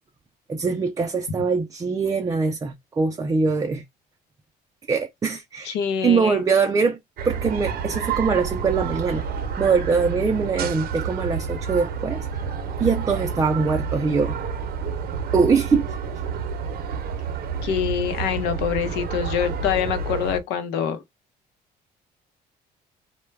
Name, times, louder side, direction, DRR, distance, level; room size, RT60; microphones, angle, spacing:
voice 1, 0.5-3.8 4.9-5.8 6.0-7.0 7.2-9.2 9.6-12.3 12.8-14.4 15.3-15.9, right 5 dB, 20° right, 0.3 m, -22 dB
voice 2, 5.6-6.4 17.6-21.0, left 8 dB, 90° left, 0.6 m, -25 dB
sound 1, 7.2-20.4, right 6 dB, 65° right, 0.6 m, -29 dB
2.2 x 2.1 x 3.2 m
cardioid pair, 110°, 17 cm